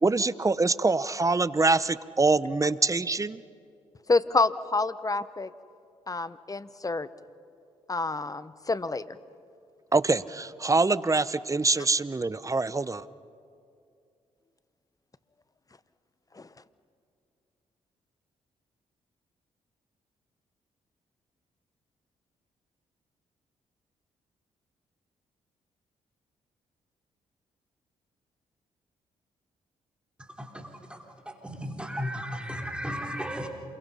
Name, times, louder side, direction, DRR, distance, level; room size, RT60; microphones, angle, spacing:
voice 1, 0.0-3.4 9.9-13.0, right 3 dB, 25° right, 17 dB, 0.8 m, -24 dB
voice 2, 4.1-5.5 6.1-7.1 7.9-9.2 16.3-16.5, left 3 dB, 25° left, 15 dB, 1.0 m, -28 dB
voice 3, 30.2-33.5, equal, 5° right, 1 dB, 4.1 m, -35 dB
28.0 x 23.0 x 5.6 m, 2.4 s
supercardioid pair, 50°, 14 cm